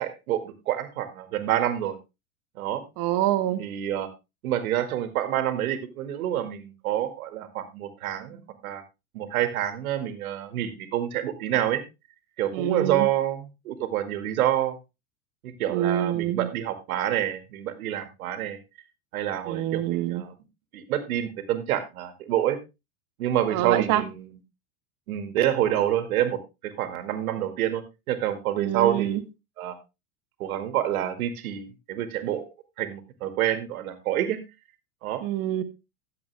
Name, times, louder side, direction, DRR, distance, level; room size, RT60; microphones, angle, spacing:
voice 1, 0.0-2.0 2.6-2.8 3.6-4.1 4.4-8.8 9.1-11.8 12.4-14.8 15.4-18.6 19.1-20.3 20.7-22.6 23.2-24.4 25.1-26.4 26.6-27.8 28.1-29.2 29.6-29.8 30.4-32.4 32.8-34.4 35.0-35.2, right 11 dB, 75° right, 10 dB, 2.1 m, -27 dB
voice 2, 3.0-3.6 12.5-13.1 15.7-16.5 19.5-20.3 23.5-24.0 28.6-29.2 35.2-35.6, right 12 dB, 45° right, 11 dB, 1.4 m, -26 dB
13.0 x 7.6 x 3.3 m, 0.25 s
hypercardioid pair, 115°, 43 cm